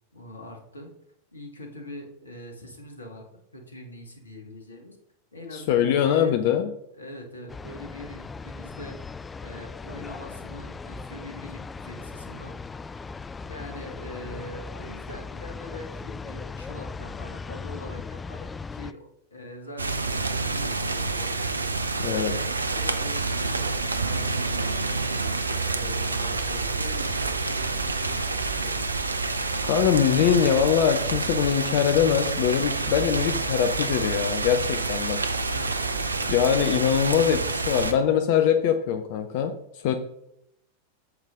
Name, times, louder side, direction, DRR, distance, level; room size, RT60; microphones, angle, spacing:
voice 1, 0.1-0.9 1.3-5.0 5.3-6.4 7.0-9.0 9.4-12.5 13.4-21.7 22.0-29.0 35.2-36.2, left 1 dB, 75° left, 4 dB, 1.9 m, -42 dB
voice 2, 5.5-6.7 22.0-22.3 29.6-35.2 36.3-39.9, left 8 dB, 50° left, 8 dB, 0.7 m, -23 dB
sound 1, 7.5-18.9, left 4 dB, 15° left, 0.3 m, -38 dB
sound 2, 19.8-37.9, right 3 dB, 80° right, 0.7 m, -28 dB
9.0 x 7.3 x 3.8 m, 0.77 s
figure-of-eight pair, 90°, 0 cm